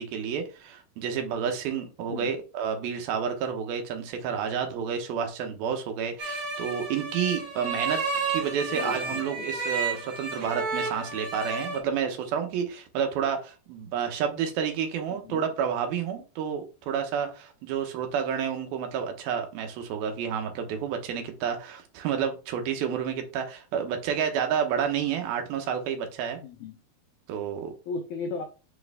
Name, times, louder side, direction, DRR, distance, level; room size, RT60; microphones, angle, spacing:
voice 1, 0.0-8.0 8.3-26.4 27.3-27.7, right 7 dB, 75° right, 2.8 m, -30 dB
sound 1, 6.2-11.8, right 4 dB, 45° right, 2.0 m, -31 dB
voice 2, 8.7-9.5 15.1-15.4 26.4-26.8 27.9-28.4, left 4 dB, 85° left, 1.6 m, -36 dB
6.0 x 4.6 x 3.5 m
omnidirectional pair, 4.5 m